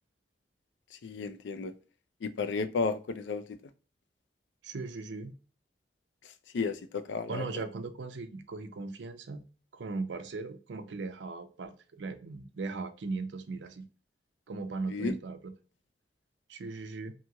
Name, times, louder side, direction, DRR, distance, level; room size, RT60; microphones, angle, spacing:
voice 1, 1.0-1.7 2.2-3.6 6.5-7.6 14.9-15.2, left 4 dB, 85° left, 0.4 m, -33 dB
voice 2, 4.6-5.4 7.3-9.4 9.7-13.9 14.5-15.5 16.5-17.1, right 3 dB, 85° right, 0.5 m, -38 dB
2.9 x 2.7 x 2.3 m
head